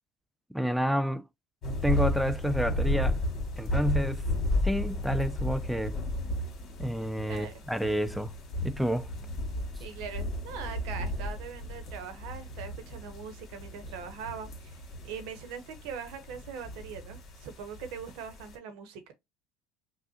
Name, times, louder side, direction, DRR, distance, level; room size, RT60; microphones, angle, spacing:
voice 1, 0.5-1.2 1.8-3.2 3.6-4.2 4.6-6.0 6.8-8.3 8.6-9.1, equal, ahead, 0.3 m, -29 dB
sound 1, 1.6-18.5, left 1 dB, 45° left, 2.0 m, -33 dB
voice 2, 7.2-7.5 9.8-19.1, right 7 dB, 70° right, 1.0 m, -42 dB
5.5 x 2.4 x 2.8 m
supercardioid pair, 95°, 0 cm